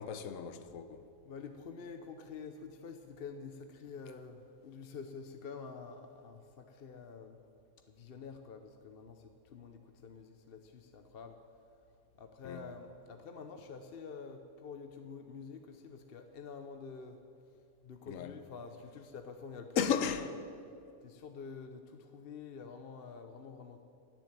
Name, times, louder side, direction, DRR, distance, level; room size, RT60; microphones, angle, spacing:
voice 1, 0.0-1.1 12.4-12.6 18.1-18.3 19.8-20.4, left 7 dB, 70° left, 1.2 m, -34 dB
voice 2, 1.2-7.4 7.9-11.4 12.2-17.2 17.8-20.4 21.0-23.8, left 5 dB, 50° left, 0.9 m, -48 dB
16.5 x 7.6 x 9.1 m
omnidirectional pair, 1.4 m